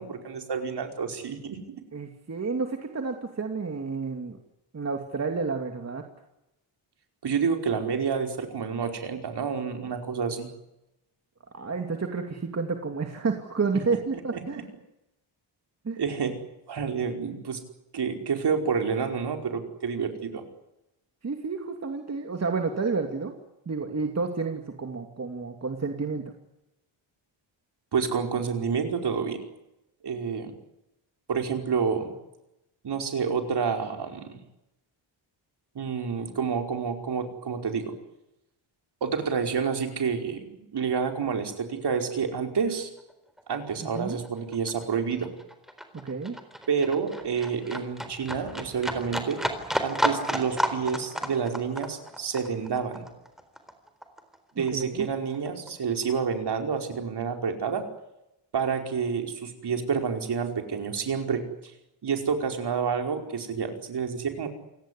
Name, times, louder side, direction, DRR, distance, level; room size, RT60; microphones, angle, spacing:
voice 1, 0.0-1.6 7.2-10.5 14.3-14.6 16.0-16.4 16.7-17.6 17.9-20.4 27.9-29.4 30.0-30.5 31.3-32.1 32.8-34.4 35.7-37.9 39.0-42.9 43.5-45.3 46.7-49.4 49.8-53.0 54.5-57.8 58.5-61.4 62.0-64.5, right 6 dB, 55° right, 5 dB, 5.1 m, -29 dB
voice 2, 1.9-4.4 4.7-6.0 11.5-14.6 15.8-16.0 21.2-23.3 23.7-26.2 43.8-44.2 46.0-46.4 54.6-55.1, right 4 dB, 30° right, 4 dB, 2.6 m, -30 dB
Livestock farm animals working animals, 43.0-43.1 43.4-54.4 54.7-55.7 56.0-56.1, equal, ahead, 4.0 m, -32 dB
28.5 x 18.0 x 9.9 m, 0.91 s
wide cardioid pair, 140°, 49 cm